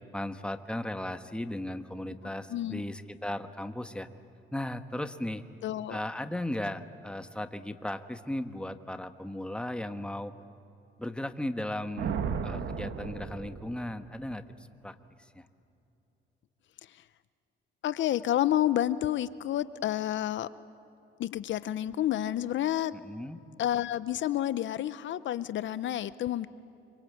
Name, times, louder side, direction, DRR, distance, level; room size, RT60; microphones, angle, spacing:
voice 1, 0.1-4.1 4.5-5.4 5.9-10.3 11.0-14.4 14.8-15.5 22.9-23.4, left 1 dB, 5° left, 8 dB, 1.3 m, -36 dB
voice 2, 2.5-2.8 5.6-6.0 16.9-17.0 17.8-20.5 21.2-22.9 23.6-26.5, left 12 dB, 70° left, 15 dB, 0.7 m, -29 dB
Thunder, 12.0-14.2, right 6 dB, 75° right, 1.7 m, -35 dB
26.5 x 24.5 x 8.6 m, 2.9 s
cardioid pair, 90°, 20 cm